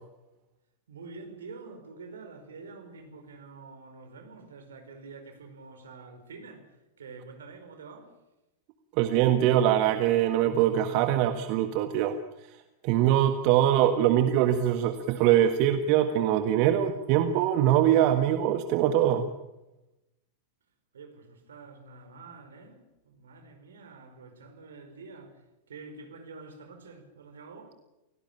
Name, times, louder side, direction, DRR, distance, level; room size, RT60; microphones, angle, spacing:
voice 1, 0.9-6.7 7.0-8.2 20.9-25.4 25.7-27.8, right 4 dB, 65° right, 5.0 m, -47 dB
voice 2, 9.0-12.2 12.8-19.3, right 11 dB, 45° right, 1.5 m, -23 dB
29.0 x 17.5 x 8.8 m
figure-of-eight pair, 90°, 0 cm